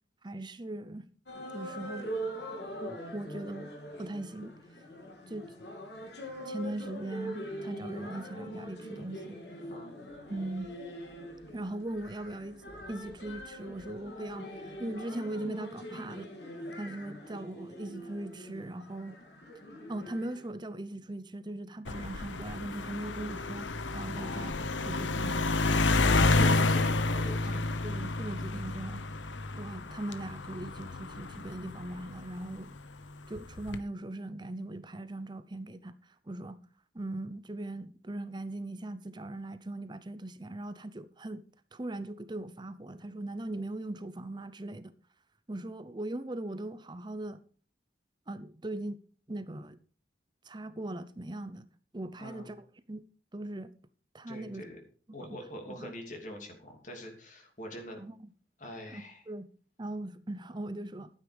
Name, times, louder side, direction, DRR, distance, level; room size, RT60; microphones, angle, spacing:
voice 1, 0.2-1.0 1.5-2.1 2.8-3.7 4.0-4.5 5.3-5.5 6.4-9.4 10.3-10.8 11.5-12.6 12.9-16.3 16.8-19.1 19.9-25.4 26.0-26.6 27.4-29.1 29.5-32.7 33.3-36.0 36.3-36.6 36.9-41.4 41.7-44.9 45.5-47.4 48.3-49.0 49.3-49.8 50.5-51.7 51.9-52.6 52.9-53.0 53.3-53.7 54.1-54.6 55.2-55.4 55.7-55.9 58.0-58.2 58.9-59.5 59.8-61.1, right 1 dB, 25° right, 0.7 m, -39 dB
sound 1, 1.3-20.5, equal, 65° left, 3.2 m, -43 dB
sound 2, 21.9-32.6 33.4-33.8, left 3 dB, 90° left, 1.0 m, -30 dB
voice 2, 24.1-24.6 26.3-27.7 52.2-52.5 54.3-54.8 55.1-58.0 58.6-59.3, left 1 dB, 45° left, 2.8 m, -44 dB
12.0 x 9.6 x 5.2 m
head